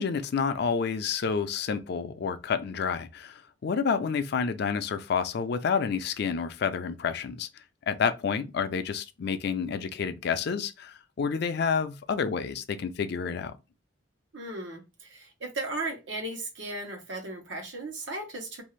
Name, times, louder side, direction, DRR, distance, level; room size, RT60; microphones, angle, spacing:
voice 1, 0.0-7.5 7.9-13.6, left 6 dB, 65° left, 0.4 m, -29 dB
voice 2, 14.3-18.6, right 2 dB, 90° right, 1.0 m, -36 dB
2.6 x 2.4 x 3.1 m
head